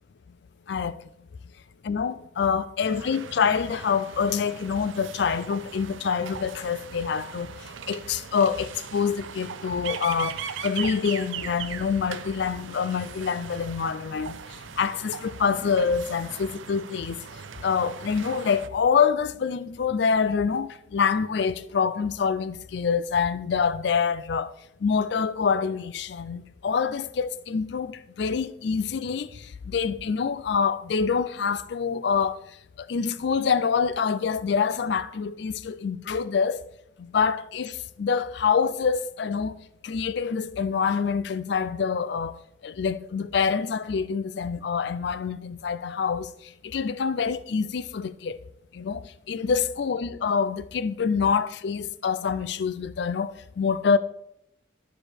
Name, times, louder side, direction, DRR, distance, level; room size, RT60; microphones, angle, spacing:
voice 1, 0.7-1.0 1.8-7.5 7.9-14.4 14.8-17.2 17.6-24.5 24.8-32.4 32.8-36.6 37.0-39.6 39.8-46.3 46.6-48.4 48.7-54.0, left 6 dB, 60° left, 0.4 m, -26 dB
sound 1, 2.8-18.7, right 7 dB, 80° right, 0.5 m, -39 dB
12.0 x 5.0 x 4.4 m
head